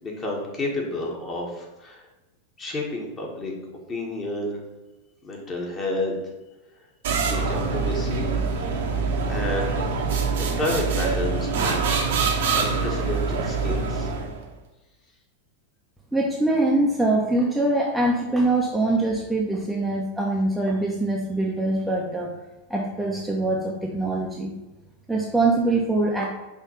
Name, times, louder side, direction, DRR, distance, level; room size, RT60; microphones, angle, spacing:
voice 1, 0.0-2.0 2.6-3.5 3.9-4.6 5.2-6.2 7.2-8.4 8.8-9.9 10.3-12.0 12.5-14.1, left 2 dB, 25° left, -1 dB, 1.8 m, -30 dB
sound 1, 7.0-14.4, right 4 dB, 55° right, 1.0 m, -25 dB
voice 2, 16.1-22.3 22.7-24.5 25.1-26.2, right 2 dB, ahead, -3 dB, 0.9 m, -23 dB
5.8 x 3.6 x 5.6 m, 1.1 s
figure-of-eight pair, 90°, 0 cm